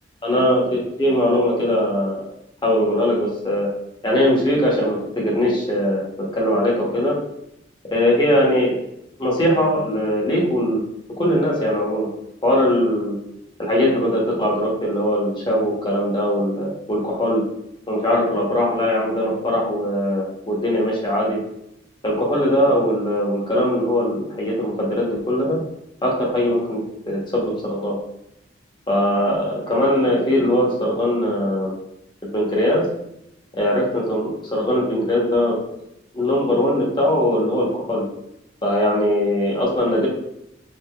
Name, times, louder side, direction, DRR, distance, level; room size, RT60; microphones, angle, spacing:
voice 1, 0.2-2.2 2.6-3.7 4.0-6.0 6.3-7.2 7.9-8.8 9.2-10.9 11.2-12.1 12.4-13.2 13.6-17.4 17.9-21.4 22.0-25.6 26.0-28.0 28.9-31.7 32.3-32.9 33.5-35.6 36.1-38.1 38.6-40.1, left 1 dB, 25° left, -3 dB, 0.9 m, -20 dB
4.6 x 2.7 x 2.3 m, 0.81 s
head